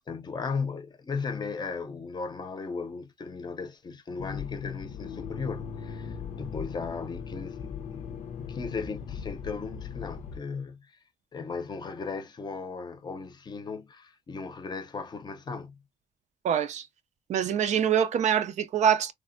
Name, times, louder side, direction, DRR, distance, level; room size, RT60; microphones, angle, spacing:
voice 1, 0.1-8.2 8.5-10.9 11.3-15.8, left 4 dB, 35° left, 0.6 m, -36 dB
Accelerating revving vroom, 4.2-10.4, left 7 dB, 90° left, 0.5 m, -38 dB
voice 2, 16.4-16.9 17.3-19.1, right 8 dB, 75° right, 0.5 m, -24 dB
3.2 x 2.1 x 2.5 m
wide cardioid pair, 135°, 12 cm